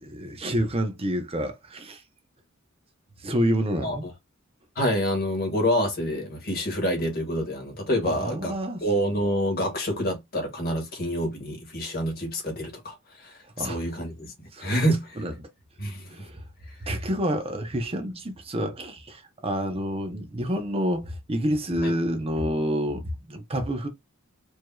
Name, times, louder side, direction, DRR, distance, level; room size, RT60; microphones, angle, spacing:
voice 1, 0.0-2.0 3.2-4.0 8.1-8.8 13.6-13.8 14.5-14.6 15.2-15.5 16.1-16.4 16.9-23.9, equal, 30° right, 0.8 m, -28 dB
voice 2, 3.8-4.1 4.7-14.3 14.6-15.2 15.8-16.1 21.8-21.9, equal, 50° left, 1.6 m, -27 dB
4.7 x 2.8 x 2.3 m
head